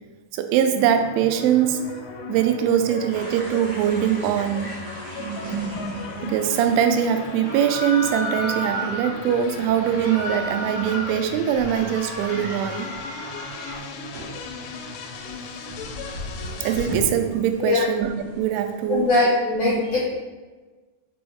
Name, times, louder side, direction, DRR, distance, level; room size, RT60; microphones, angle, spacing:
voice 1, 0.3-1.8 2.3-4.8 6.2-12.9 16.6-19.1 19.6-19.8, right 9 dB, 85° right, 7 dB, 3.0 m, -22 dB
sound 1, 0.8-16.9, left 4 dB, 90° left, 3.2 m, -37 dB
sound 2, 3.1-19.3, right 1 dB, 40° right, 2.4 m, -38 dB
sound 3, 7.4-9.1 9.8-11.1 11.5-13.8, equal, 65° right, 2.3 m, -32 dB
voice 2, 18.9-20.0, left 3 dB, 55° left, -8 dB, 2.5 m, -20 dB
6.9 x 5.1 x 3.5 m, 1.3 s
omnidirectional pair, 5.5 m